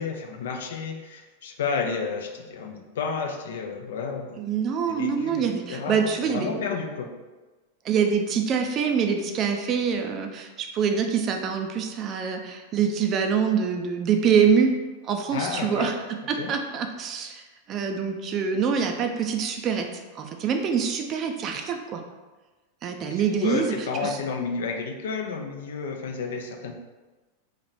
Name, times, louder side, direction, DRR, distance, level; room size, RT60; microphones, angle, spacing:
voice 1, 0.0-4.4 4.9-7.1 15.3-16.0 16.3-16.5 23.1-26.7, left 5 dB, 60° left, 3 dB, 0.5 m, -31 dB
voice 2, 4.4-6.6 7.8-14.7 15.0-17.4 17.7-19.9 20.2-22.0 22.8-23.8 24.0-24.2, right 6 dB, 30° right, 4 dB, 0.4 m, -25 dB
3.1 x 2.9 x 4.0 m, 1.2 s
figure-of-eight pair, 90°, 0 cm